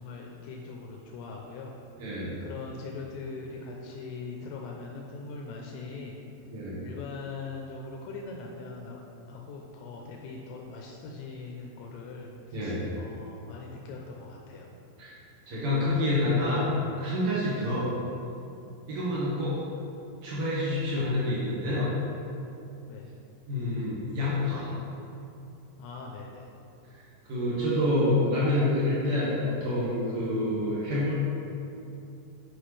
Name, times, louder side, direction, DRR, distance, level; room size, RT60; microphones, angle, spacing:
voice 1, 0.0-1.7 2.4-6.2 6.8-9.0 9.3-14.7 22.9-23.1 25.8-26.5, left 4 dB, 85° left, 0 dB, 2.9 m, -41 dB
voice 2, 2.0-2.3 6.5-6.8 12.5-12.8 15.0-15.1 15.5-16.7 17.0-17.9 18.9-19.6 20.2-21.9 23.5-24.7 26.8-27.0 27.3-31.1, left 1 dB, 85° right, -8 dB, 1.2 m, -27 dB
10.0 x 6.0 x 3.2 m, 2.7 s
omnidirectional pair, 5.1 m